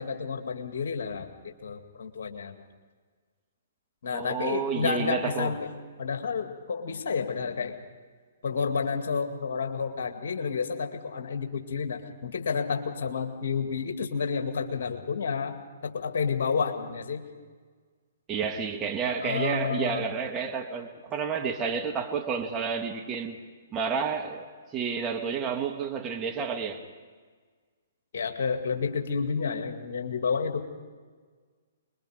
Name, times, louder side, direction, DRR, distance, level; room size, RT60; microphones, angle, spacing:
voice 1, 0.0-2.6 4.0-5.7 6.0-7.8 8.4-17.3 19.1-20.1 28.1-30.6, left 5 dB, 60° left, 2.2 m, -30 dB
voice 2, 4.1-5.6 18.3-23.4 23.7-26.8, right 6 dB, 20° right, 1.8 m, -30 dB
26.0 x 22.0 x 5.0 m
figure-of-eight pair, 125°, 0 cm